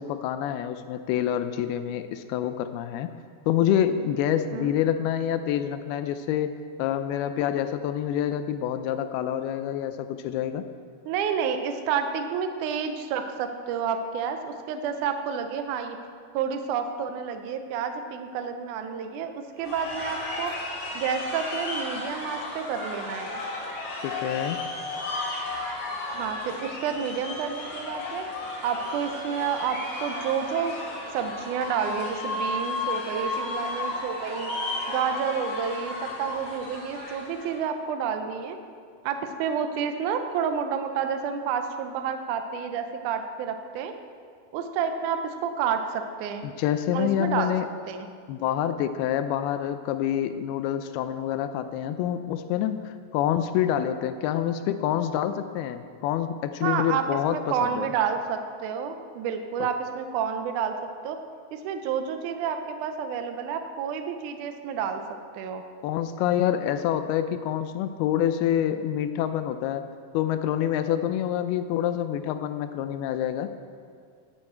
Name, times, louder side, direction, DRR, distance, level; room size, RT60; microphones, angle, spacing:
voice 1, 0.0-3.1 3.5-6.5 6.8-10.6 24.0-24.6 46.4-47.7 48.3-57.9 65.8-69.8 70.1-73.5, left 10 dB, 85° left, 10 dB, 2.5 m, -27 dB
voice 2, 11.1-16.0 16.3-20.5 21.0-23.4 26.1-28.3 28.6-30.8 31.1-34.5 34.9-38.6 39.0-43.9 44.5-46.5 46.9-47.5 47.9-48.1 56.6-57.0 57.3-61.2 61.5-65.0 65.3-65.6, right 7 dB, 85° right, 6 dB, 1.7 m, -29 dB
sound 1, 19.6-37.6, left 2 dB, 45° left, 2.4 m, -33 dB
15.5 x 7.3 x 4.4 m, 2.1 s
omnidirectional pair, 4.4 m